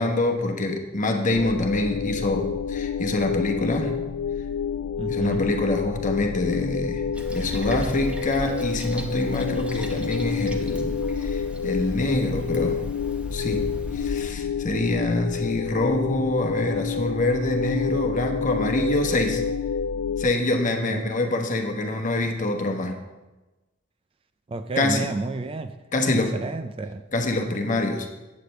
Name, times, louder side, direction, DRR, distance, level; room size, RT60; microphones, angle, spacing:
voice 1, 0.0-3.9 5.1-7.0 7.3-12.8 13.3-13.6 13.9-19.4 20.2-23.0 24.8-25.1 25.9-26.3 27.1-28.1, left 2 dB, 40° left, 1.1 m, -25 dB
sound 1, 1.3-20.3, left 6 dB, 90° left, 0.3 m, -29 dB
voice 2, 5.0-5.5 20.9-21.1 24.5-25.8 26.1-27.0, right 3 dB, 30° right, 0.4 m, -31 dB
Toilet flush, 7.1-14.3, equal, 5° right, 0.8 m, -36 dB
8.3 x 5.0 x 7.7 m
head